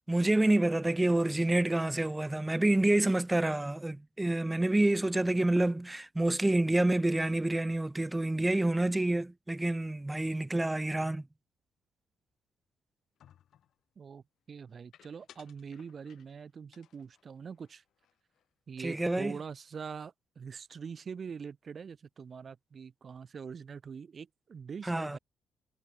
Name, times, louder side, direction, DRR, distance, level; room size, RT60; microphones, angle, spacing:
voice 1, 0.1-11.2 18.8-19.3 24.8-25.2, right 1 dB, 10° right, 0.4 m, -28 dB
sound 1, 13.2-13.8 14.9-16.4 16.7-18.5 18.7-18.9 19.2-19.7, left 10 dB, 70° left, 7.7 m, -62 dB
voice 2, 14.0-17.8 18.7-25.2, right 6 dB, 45° right, 1.8 m, -44 dB
cardioid pair, 90°, 0 cm